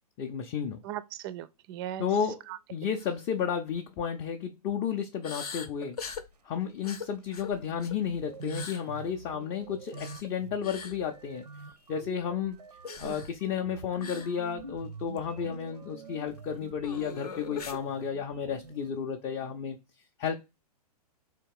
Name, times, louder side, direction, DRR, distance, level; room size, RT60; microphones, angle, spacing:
voice 1, 0.2-0.8 2.0-2.4 2.7-6.0 6.4-11.4 11.9-12.6 13.0-19.8 20.2-20.3, left 7 dB, 25° left, 0.4 m, -32 dB
voice 2, 0.8-2.1 2.5-2.9 13.0-13.2, right 12 dB, 35° right, 0.4 m, -39 dB
sound 1, 3.0-3.2 3.6-3.8 5.2-6.3 6.8-8.0 8.4-8.8 9.9-10.3 10.6-11.0 12.8-13.3 14.0-14.3 14.6-14.7 15.2-15.3 16.8-17.8, left 6 dB, 70° left, 0.7 m, -41 dB
sound 2, 7.3-7.4 7.7-18.9, right 4 dB, 85° right, 0.6 m, -46 dB
3.5 x 2.9 x 4.6 m
figure-of-eight pair, 115°, 20 cm